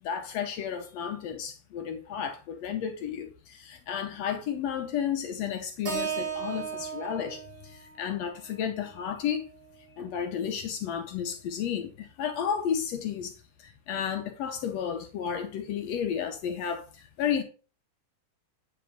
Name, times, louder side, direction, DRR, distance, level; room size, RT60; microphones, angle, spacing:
voice 1, 0.0-9.4 10.0-13.3 13.6-17.4, left 8 dB, 70° left, 1.7 m, -32 dB
Keyboard (musical), 5.8-10.1, right 7 dB, 40° right, 3.0 m, -37 dB
9.0 x 3.5 x 5.1 m
omnidirectional pair, 3.6 m